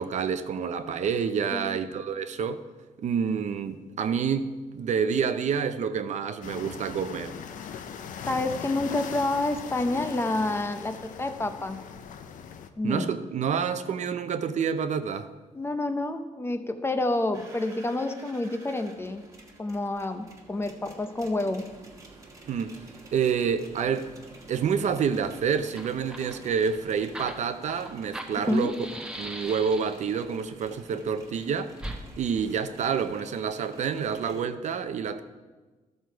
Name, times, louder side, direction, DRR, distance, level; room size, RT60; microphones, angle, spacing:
voice 1, 0.0-2.6 3.0-7.3 12.8-15.3 22.5-22.8 23.1-24.1 24.5-28.8 29.2-31.7 32.2-35.2, right 6 dB, 60° right, 0.6 m, -28 dB
sound 1, 6.4-12.7, left 7 dB, 75° left, 0.7 m, -40 dB
voice 2, 8.3-11.8 12.8-13.1 15.5-19.2 19.6-21.7 28.5-28.7, left 2 dB, 20° left, 0.6 m, -28 dB
sound 2, 17.3-34.4, right 2 dB, 25° right, 1.6 m, -50 dB
Fire, 25.7-30.2 31.8-32.0, right 1 dB, 5° right, 1.0 m, -40 dB
13.0 x 6.5 x 4.5 m
cardioid pair, 135°, 14 cm